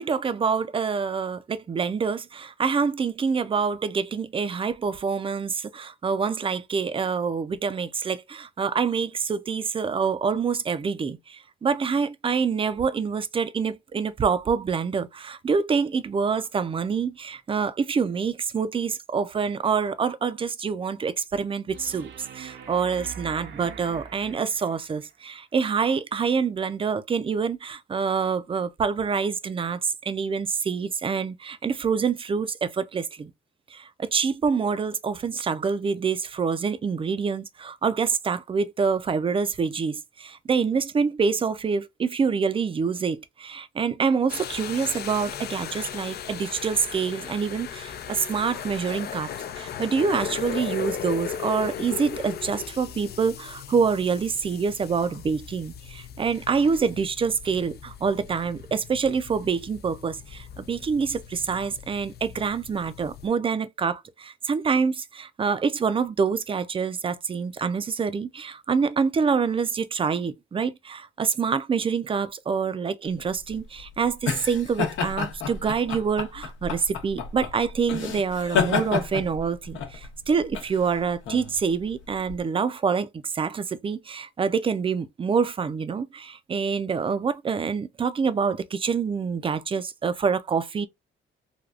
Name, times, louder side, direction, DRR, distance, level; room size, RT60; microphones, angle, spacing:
voice 1, 0.0-33.3 33.7-90.9, right 5 dB, 25° right, 0.4 m, -26 dB
sound 1, 21.7-25.1 27.7-27.8, right 7 dB, 65° right, 0.6 m, -43 dB
sound 2, 44.3-63.3, left 9 dB, 55° left, 0.4 m, -37 dB
sound 3, 73.2-82.4, left 6 dB, 75° left, 0.9 m, -30 dB
3.3 x 2.3 x 2.4 m
cardioid pair, 90°, 20 cm